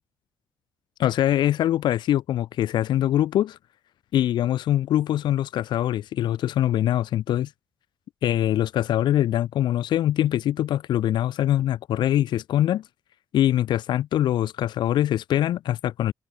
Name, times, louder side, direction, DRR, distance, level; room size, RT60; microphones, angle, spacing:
voice 1, 1.0-3.6 4.1-7.5 8.2-12.8 13.3-16.1, left 12 dB, 70° left, 2.5 m, -23 dB
open air
cardioid pair, 165°, 8 cm